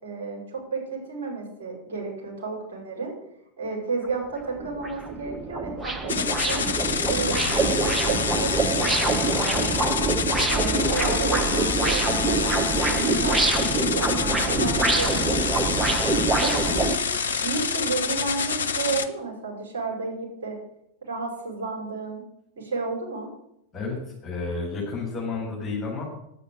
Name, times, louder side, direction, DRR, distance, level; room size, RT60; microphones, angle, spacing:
voice 1, 0.0-3.1 3.6-6.8 7.1-10.0 10.4-13.5 13.9-16.1 16.4-17.0 17.4-20.6 21.0-22.2 22.6-23.3, right 4 dB, 60° right, -2 dB, 5.5 m, -32 dB
sound 1, 4.0-4.1 4.6-17.0, right 3 dB, 15° right, 1.1 m, -25 dB
sound 2, 6.1-19.1, left 6 dB, 65° left, 0.9 m, -27 dB
voice 2, 24.2-26.0, left 4 dB, 20° left, -4 dB, 5.0 m, -31 dB
10.5 x 8.3 x 7.9 m, 0.78 s
figure-of-eight pair, 90°, 0 cm